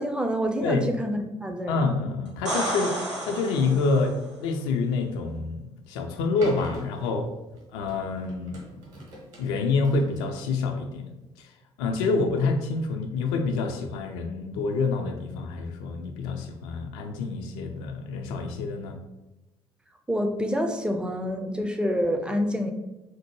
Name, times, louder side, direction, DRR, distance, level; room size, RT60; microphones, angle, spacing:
voice 1, 0.0-1.9 20.1-22.7, equal, 5° right, 5 dB, 0.5 m, -27 dB
voice 2, 1.7-7.3 7.7-8.6 9.4-11.0 11.4-11.5 11.8-19.0, left 4 dB, 65° left, 4 dB, 0.4 m, -27 dB
sound 1, 2.3-4.2 7.9-8.0, right 1 dB, 85° right, 0.8 m, -31 dB
sound 2, 6.4-11.3, right 1 dB, 55° right, 1.2 m, -43 dB
4.4 x 2.1 x 3.1 m, 1.0 s
figure-of-eight pair, 50°, 15 cm